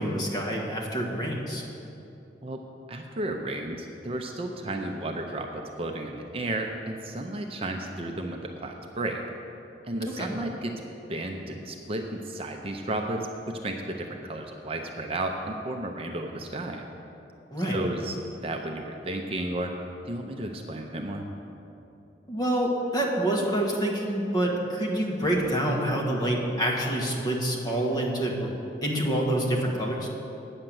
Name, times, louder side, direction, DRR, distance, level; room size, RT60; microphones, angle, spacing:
voice 1, 0.0-1.6 10.1-10.4 17.5-17.8 22.3-28.5 28.8-30.1, right 1 dB, 25° left, -2 dB, 1.4 m, -27 dB
voice 2, 2.9-9.2 9.8-10.8 11.1-16.8 17.7-18.2 18.4-19.8 20.1-21.2, right 1 dB, 35° right, 3 dB, 0.6 m, -33 dB
8.8 x 6.6 x 7.5 m, 2.8 s
head